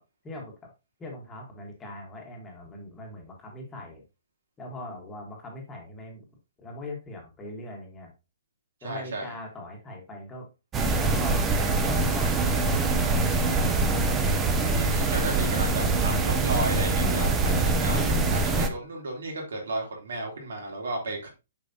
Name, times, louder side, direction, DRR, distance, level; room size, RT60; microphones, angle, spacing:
voice 1, 0.2-0.7 1.0-4.0 4.6-6.2 6.6-8.1 8.8-10.5 10.9-13.8 14.9-15.4, left 2 dB, 10° left, 0 dB, 1.3 m, -41 dB
voice 2, 8.8-9.2 14.7-21.3, right 2 dB, 80° right, 0 dB, 3.0 m, -33 dB
sound 1, 10.7-18.7, right 3 dB, 10° right, 0.6 m, -24 dB
7.0 x 5.0 x 2.7 m, 0.27 s
hypercardioid pair, 170°, 0 cm